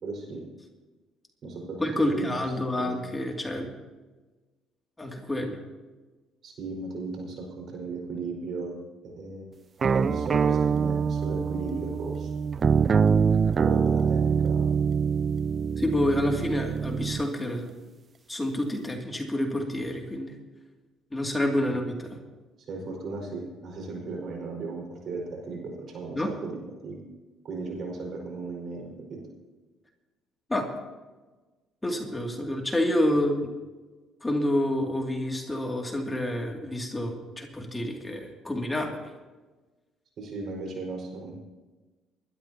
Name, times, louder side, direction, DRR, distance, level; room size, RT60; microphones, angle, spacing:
voice 1, 0.0-0.4 1.4-2.4 2.8-3.0 6.4-8.8 9.0-9.5 9.9-12.3 13.6-14.7 21.6-21.8 22.7-27.0 27.4-29.2 33.1-33.2 40.2-41.3, right 3 dB, 60° right, 0 dB, 5.0 m, -36 dB
voice 2, 1.8-3.7 5.0-5.6 15.8-17.7 18.3-20.4 21.1-22.2 26.1-26.3 30.5-30.7 31.8-33.5 34.2-39.0, left 1 dB, 15° left, 1 dB, 2.5 m, -28 dB
sound 1, 9.8-17.3, right 6 dB, 40° right, 0.3 m, -24 dB
23.5 x 12.5 x 2.9 m, 1.2 s
supercardioid pair, 70°, 0 cm